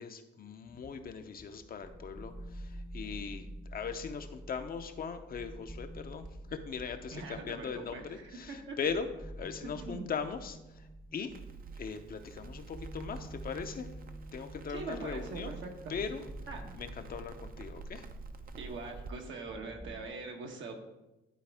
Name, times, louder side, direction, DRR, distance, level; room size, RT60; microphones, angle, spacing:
voice 1, 0.0-11.4 11.8-13.9 14.3-15.5 15.9-16.2 16.7-18.0, left 6 dB, 50° left, 7 dB, 0.7 m, -40 dB
sound 1, 0.7-20.1, right 1 dB, 5° right, 0.7 m, -49 dB
voice 2, 7.1-8.8 9.7-10.1 14.7-16.0 16.5-16.8 18.6-20.7, right 3 dB, 70° right, 2 dB, 1.3 m, -42 dB
Crackle, 11.3-19.1, right 4 dB, 45° right, 0.6 m, -48 dB
11.5 x 4.1 x 3.5 m, 0.99 s
cardioid pair, 90°, 20 cm